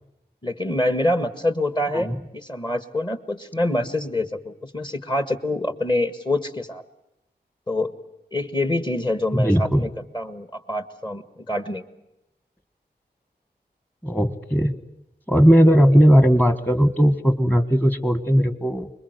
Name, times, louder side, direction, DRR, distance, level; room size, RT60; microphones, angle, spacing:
voice 1, 0.4-6.8 7.7-7.9 8.3-9.9 10.1-11.8, left 1 dB, 25° left, 11 dB, 1.6 m, -26 dB
voice 2, 9.3-9.9 14.0-14.8 15.3-18.9, equal, 10° left, 12 dB, 1.5 m, -17 dB
25.5 x 22.0 x 8.1 m, 0.87 s
wide cardioid pair, 95°, 18 cm